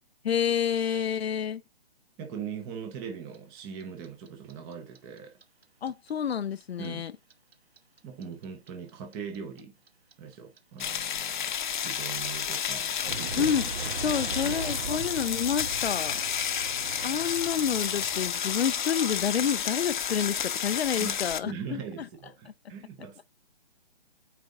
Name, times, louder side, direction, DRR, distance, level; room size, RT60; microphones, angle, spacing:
voice 1, 0.2-1.6 5.8-7.1 13.4-13.7 13.9-16.2 17.0-21.8, left 8 dB, 80° left, 0.5 m, -29 dB
voice 2, 2.2-5.4 6.8-7.0 8.0-9.7 10.2-13.5 14.0-14.2 14.4-14.5 14.9-15.1 21.0-23.2, right 6 dB, 10° right, 0.5 m, -41 dB
Clock, 3.3-6.3 6.6-9.6 9.9-18.7, right 5 dB, 75° right, 1.1 m, -39 dB
sound 1, 10.8-21.4, left 8 dB, 50° left, 0.8 m, -31 dB
9.1 x 3.5 x 3.6 m
figure-of-eight pair, 145°, 31 cm